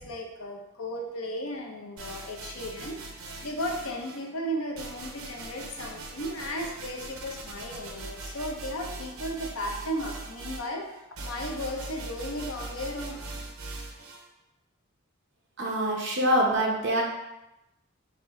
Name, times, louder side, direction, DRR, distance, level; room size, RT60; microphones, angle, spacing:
voice 1, 0.0-10.8 11.2-13.2, equal, 80° left, 1 dB, 0.7 m, -35 dB
sound 1, 2.0-4.3 4.8-14.3, right 2 dB, 80° right, 0.7 m, -41 dB
voice 2, 15.6-17.0, right 1 dB, 55° right, -1 dB, 0.9 m, -25 dB
4.4 x 3.0 x 3.6 m, 0.94 s
head